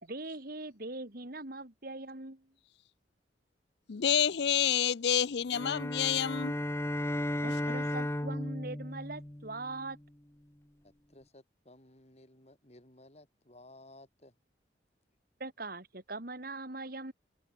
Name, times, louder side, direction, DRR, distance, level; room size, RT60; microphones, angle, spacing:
voice 1, 0.0-2.5 7.4-10.0 15.4-17.1, right 2 dB, 55° right, 2.8 m, -41 dB
voice 2, 3.9-6.5, left 9 dB, 65° left, 0.5 m, -28 dB
sound 1, 5.5-10.0, left 1 dB, 15° left, 1.0 m, -35 dB
voice 3, 10.8-14.3, left 1 dB, 35° left, 5.3 m, -57 dB
open air
head